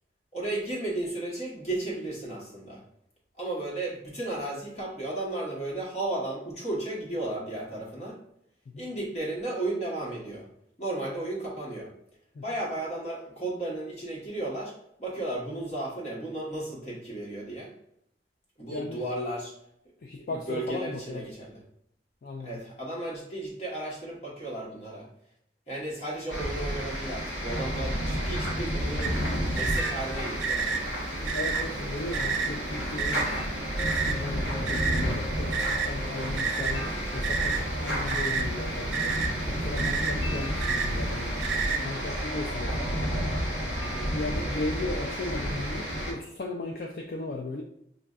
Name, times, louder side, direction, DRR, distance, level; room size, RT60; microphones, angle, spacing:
voice 1, 0.3-2.8 3.4-8.2 8.8-10.5 10.8-11.9 12.4-14.7 15.0-17.7 18.6-19.5 20.2-21.6 22.4-25.1 25.7-29.1 29.5-30.8 43.8-44.1, right 2 dB, 35° left, -4 dB, 1.2 m, -34 dB
voice 2, 18.7-19.1 20.0-21.3 22.2-22.6 31.2-33.4 33.9-41.3 41.8-42.9 44.0-47.6, left 2 dB, 55° left, 2 dB, 0.3 m, -36 dB
sound 1, 26.3-46.1, equal, 85° left, 1.2 m, -31 dB
sound 2, 29.0-41.8, right 5 dB, 80° right, 0.5 m, -32 dB
6.3 x 2.5 x 2.4 m, 0.74 s
head